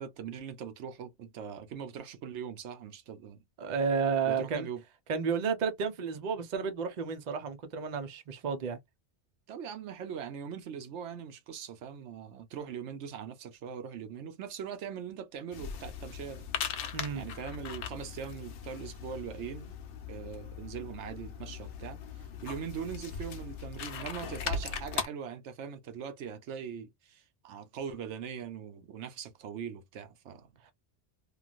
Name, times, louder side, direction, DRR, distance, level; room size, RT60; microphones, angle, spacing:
voice 1, 0.0-3.4 4.3-4.8 9.5-16.4 17.1-19.8 20.1-30.5, right 7 dB, 80° right, 0.9 m, -41 dB
voice 2, 3.6-4.7 5.1-8.8 16.9-17.3 30.6-30.7, right 5 dB, 45° right, 0.7 m, -31 dB
sound 1, 15.5-25.0, left 6 dB, 80° left, 0.9 m, -39 dB
3.0 x 2.4 x 2.4 m
omnidirectional pair, 1.2 m